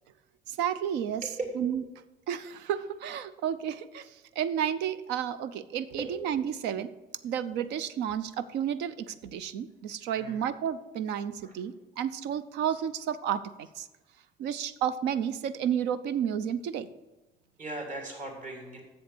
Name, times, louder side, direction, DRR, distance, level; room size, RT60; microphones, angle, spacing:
voice 1, 0.5-1.2 1.6-1.8 2.3-6.9 7.2-13.9 14.4-16.9, right 9 dB, 85° right, 14 dB, 0.6 m, -31 dB
voice 2, 17.6-18.8, right 2 dB, 50° right, 1 dB, 2.8 m, -38 dB
7.8 x 7.1 x 6.7 m, 1.1 s
cardioid pair, 110°, 17 cm